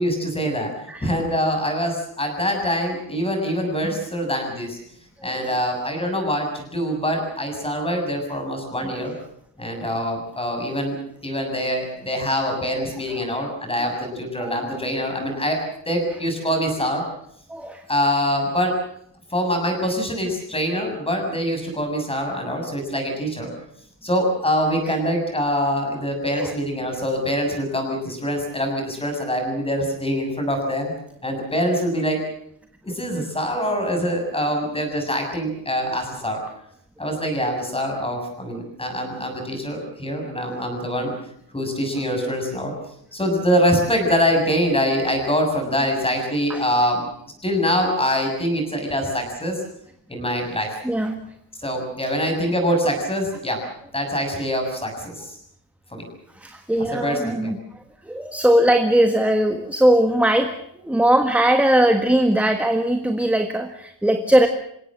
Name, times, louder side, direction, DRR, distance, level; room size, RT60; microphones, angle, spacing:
voice 1, 0.0-4.8 5.2-9.1 9.6-11.0 11.2-17.0 17.9-18.8 19.3-23.5 24.0-30.9 31.2-32.2 32.8-36.4 37.0-41.1 41.5-42.7 43.1-47.1 47.4-49.6 50.1-50.8 51.6-53.6 53.9-55.4 55.9-56.1 56.8-57.5, equal, 15° left, 3 dB, 7.2 m, -24 dB
voice 2, 5.2-5.5 8.8-8.9 9.9-10.0 13.1-13.2 14.4-14.5 17.5-17.8 22.7-23.0 24.8-25.0 26.3-26.6 46.5-46.6 50.8-51.2 52.1-52.2 56.3-60.6 60.8-64.5, right 1 dB, 5° right, 6 dB, 1.5 m, -20 dB
28.5 x 17.0 x 7.6 m, 0.73 s
wide cardioid pair, 170°, 44 cm